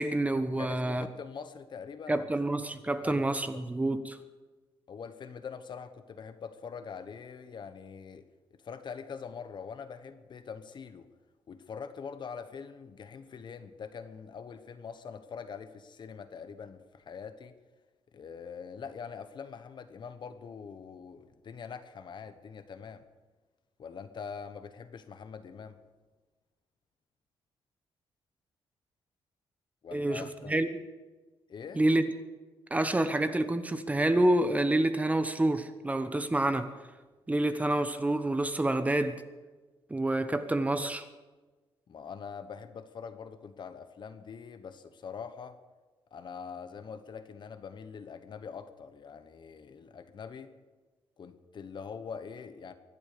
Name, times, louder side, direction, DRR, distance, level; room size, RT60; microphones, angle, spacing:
voice 1, 0.0-1.1 2.1-4.2 29.9-30.8 31.8-32.0 32.7-36.7 37.3-39.2 39.9-41.1, right 1 dB, 15° right, 1.0 m, -28 dB
voice 2, 0.6-2.2 3.0-3.6 4.9-8.2 8.6-11.1 11.5-17.5 18.1-23.0 23.8-25.8 29.8-30.6 31.5-31.8 41.9-45.6 46.1-50.5 51.2-52.7, left 6 dB, 50° left, 1.2 m, -43 dB
24.0 x 8.2 x 6.8 m
cardioid pair, 115°, 10 cm